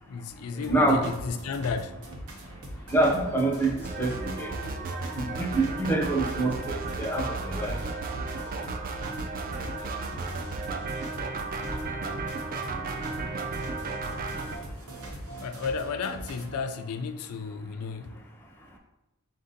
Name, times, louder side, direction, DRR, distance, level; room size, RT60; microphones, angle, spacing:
voice 1, 0.0-2.0 15.4-18.1, left 5 dB, 75° left, 0.3 m, -33 dB
voice 2, 0.5-1.1 2.9-4.6 5.1-7.8, right 2 dB, 10° left, 0.6 m, -26 dB
sound 1, 0.6-16.6, right 1 dB, 75° right, 0.8 m, -42 dB
sound 2, 3.8-14.6, right 3 dB, 40° right, 0.4 m, -34 dB
4.2 x 2.7 x 3.8 m
head